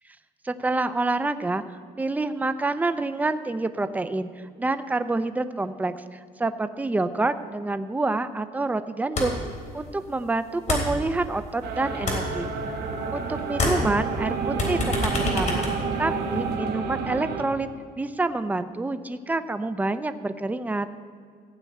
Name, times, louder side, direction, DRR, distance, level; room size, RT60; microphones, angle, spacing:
voice 1, 0.4-1.6 2.0-9.4 9.7-12.5 13.1-15.7 16.0-17.7 18.0-20.9, right 2 dB, 10° right, 11 dB, 0.5 m, -27 dB
sound 1, 9.2-9.6 9.8-11.6 11.9-13.2 13.5-16.5, left 2 dB, 45° left, 3.6 m, -28 dB
sound 2, 11.6-17.4, right 5 dB, 65° right, 1.6 m, -29 dB
15.0 x 5.3 x 8.6 m, 2.1 s
cardioid pair, 110°, 17 cm